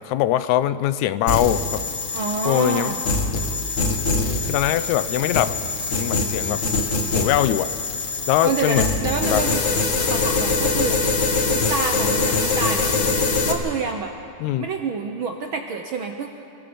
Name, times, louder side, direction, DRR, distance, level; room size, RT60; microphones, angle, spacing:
voice 1, 0.1-1.8 2.5-2.9 4.4-5.6 6.0-6.6 7.1-7.7 8.3-8.9 9.2-9.4 14.4-14.7, left 13 dB, 80° left, 14 dB, 2.0 m, -22 dB
sound 1, 1.3-13.5, left 3 dB, 35° left, 1.3 m, -23 dB
voice 2, 2.1-3.0 8.4-9.6 10.1-11.0 11.5-14.1 14.6-16.3, right 5 dB, 65° right, 4 dB, 1.3 m, -28 dB
29.0 x 17.0 x 5.3 m, 2.4 s
omnidirectional pair, 3.4 m